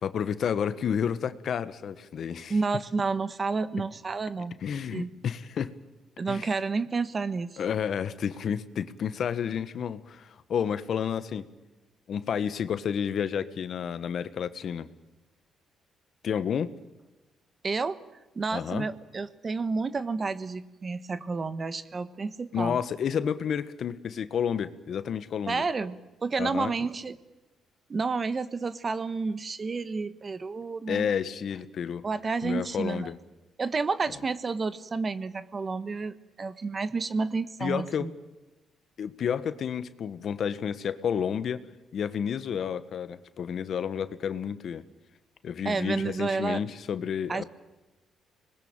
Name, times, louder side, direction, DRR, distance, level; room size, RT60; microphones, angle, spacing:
voice 1, 0.0-2.6 4.6-5.7 6.3-6.5 7.6-11.5 12.1-14.9 16.2-16.7 18.5-18.9 22.5-25.6 26.4-26.7 30.9-32.0 32.4-33.2 37.6-38.1 39.0-41.7 41.9-44.9 45.4-47.4, left 8 dB, 60° left, 13 dB, 1.4 m, -30 dB
voice 2, 2.5-4.6 4.9-5.1 6.2-7.6 17.6-18.0 18.3-22.8 25.5-27.2 27.9-31.1 32.0-33.1 33.6-38.1 45.6-46.6 47.3-47.4, right 4 dB, 35° right, 14 dB, 1.3 m, -30 dB
25.5 x 21.0 x 8.9 m, 1.1 s
cardioid pair, 90°, 0 cm